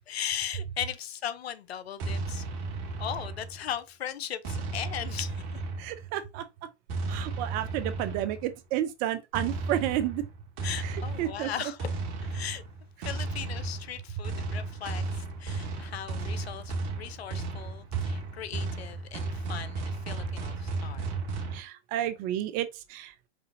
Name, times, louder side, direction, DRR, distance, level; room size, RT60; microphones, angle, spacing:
voice 1, 0.0-2.4 3.0-5.4 10.6-11.9 12.2-12.6 13.0-21.1, left 10 dB, 65° left, 0.8 m, -38 dB
sound 1, 2.0-3.8 4.4-6.2 6.9-8.5 9.3-21.6, right 3 dB, 40° right, 1.7 m, -34 dB
voice 2, 5.8-6.5 7.1-10.3 10.8-11.7 21.5-23.1, right 12 dB, 25° right, 0.5 m, -31 dB
5.1 x 3.9 x 2.6 m
hypercardioid pair, 110°, 34 cm